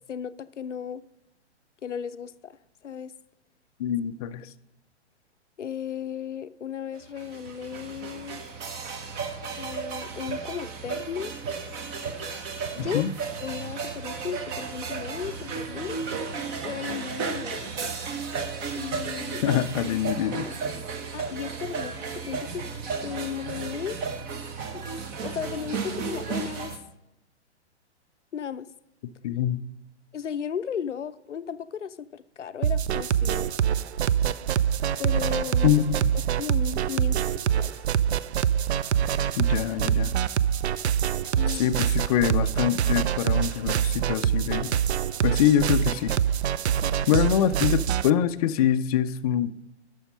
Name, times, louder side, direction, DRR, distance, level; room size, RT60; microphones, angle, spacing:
voice 1, 0.1-1.0 1.8-2.6 2.8-3.1 5.6-8.4 9.6-11.3 12.7-13.0 13.4-16.0 16.6-17.9 18.7-19.4 19.9-20.0 20.4-20.5 21.1-22.0 22.3-22.6 23.0-24.0 24.7-24.8 25.2-26.8 28.3-28.7 30.1-33.5 35.0-35.7 36.3-37.8 41.4-41.8, left 8 dB, 85° left, 13 dB, 0.6 m, -35 dB
voice 2, 3.8-4.5 12.8-13.1 19.4-20.5 29.2-29.6 35.6-36.1 39.4-40.1 41.5-44.7 45.2-46.1 47.1-49.5, left 10 dB, 35° left, 10 dB, 0.5 m, -24 dB
sound 1, 6.9-26.8, right 5 dB, 25° right, 1.0 m, -34 dB
sound 2, 32.6-48.1, right 9 dB, 65° right, 0.5 m, -25 dB
11.0 x 6.4 x 5.3 m, 0.87 s
figure-of-eight pair, 120°, 35 cm